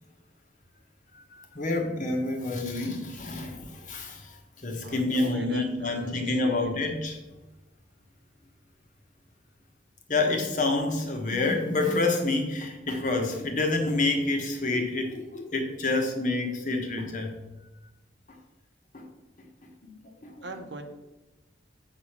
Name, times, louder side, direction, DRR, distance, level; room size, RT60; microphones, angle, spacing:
voice 1, 1.1-7.2 10.1-17.4 18.9-19.1 19.8-19.9 20.2-20.5, left 2 dB, 45° left, 3 dB, 1.3 m, -28 dB
voice 2, 4.8-6.8 20.4-20.8, right 2 dB, 75° right, 6 dB, 1.0 m, -40 dB
7.9 x 4.8 x 5.9 m, 1.1 s
head